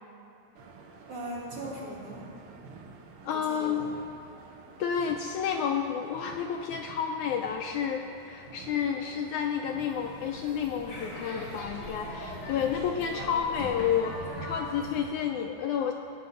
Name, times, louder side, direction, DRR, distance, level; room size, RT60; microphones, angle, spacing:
sound 1, 0.5-15.0, right 4 dB, 80° right, 1.2 m, -50 dB
voice 1, 1.1-2.3 3.3-3.9, right 1 dB, 45° right, -5 dB, 3.0 m, -39 dB
voice 2, 3.2-3.9 4.8-15.9, left 8 dB, 80° left, 3 dB, 1.8 m, -30 dB
sound 2, 9.7-15.1, left 1 dB, 40° left, 3.3 m, -40 dB
19.0 x 8.6 x 5.6 m, 2.8 s
omnidirectional pair, 4.0 m